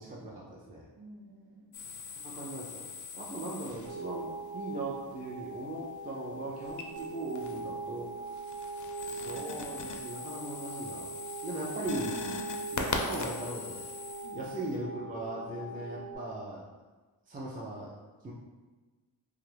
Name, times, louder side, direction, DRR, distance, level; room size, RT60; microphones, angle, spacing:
voice 1, 0.0-0.9 2.2-2.8 3.1-8.3 9.1-11.1 11.4-12.2 12.7-13.9 14.3-16.7 17.3-17.9 18.2-18.3, right 1 dB, 20° right, -4 dB, 0.4 m, -39 dB
voice 2, 1.0-2.0 14.2-14.6, right 1 dB, 55° right, -3 dB, 0.9 m, -53 dB
sound 1, 1.7-4.2 6.6-7.7 8.1-14.7, left 4 dB, 45° left, 0.4 m, -41 dB
sound 2, 3.8-16.2, right 3 dB, 35° right, 1.1 m, -41 dB
2.6 x 2.4 x 3.3 m, 1.3 s
cardioid pair, 55°, 46 cm